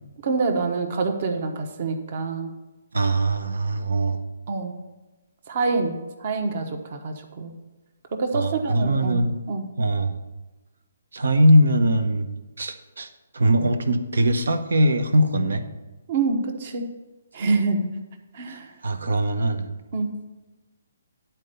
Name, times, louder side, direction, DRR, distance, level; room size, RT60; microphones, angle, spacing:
voice 1, 0.2-2.5 4.5-4.7 5.5-7.5 8.1-9.7 16.1-16.9 17.3-17.9 18.3-18.7 19.9-20.1, right 3 dB, 50° right, 5 dB, 1.1 m, -26 dB
voice 2, 2.9-4.2 8.3-9.4 9.8-10.2 11.1-12.3 12.6-13.1 13.3-15.6 18.8-19.7, right 1 dB, 80° right, 9 dB, 0.9 m, -21 dB
10.5 x 4.4 x 6.7 m, 1.1 s
hypercardioid pair, 150°, 0 cm